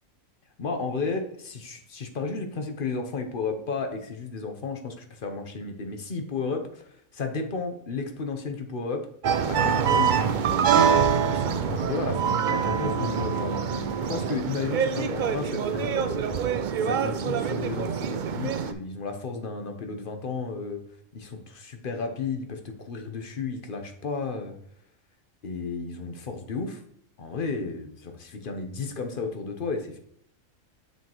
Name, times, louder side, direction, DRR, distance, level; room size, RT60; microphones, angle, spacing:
voice 1, 0.6-6.8 7.1-9.1 9.5-11.0 11.3-13.5 14.0-16.2 16.8-20.8 21.1-24.6 25.4-26.8 27.2-30.0, left 4 dB, 45° left, 5 dB, 0.9 m, -33 dB
sound 1, 9.2-18.7, right 7 dB, 75° right, 0.4 m, -25 dB
6.9 x 6.2 x 3.0 m, 0.67 s
omnidirectional pair, 1.4 m